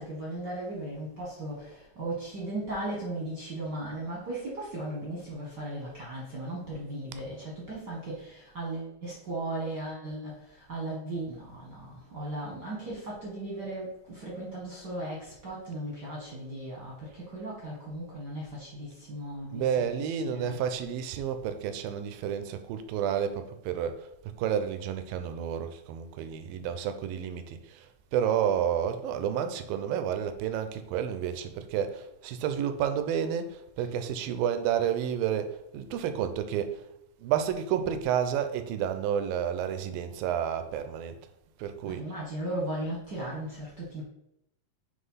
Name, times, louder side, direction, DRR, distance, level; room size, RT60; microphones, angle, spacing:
voice 1, 0.0-20.6 33.8-33.9 41.8-44.0, right 1 dB, 50° right, -4 dB, 1.3 m, -37 dB
voice 2, 19.5-27.8 28.1-36.8 37.2-41.1 41.6-42.0, right 9 dB, 80° right, 9 dB, 2.4 m, -30 dB
7.4 x 3.4 x 5.6 m, 0.79 s
omnidirectional pair, 4.1 m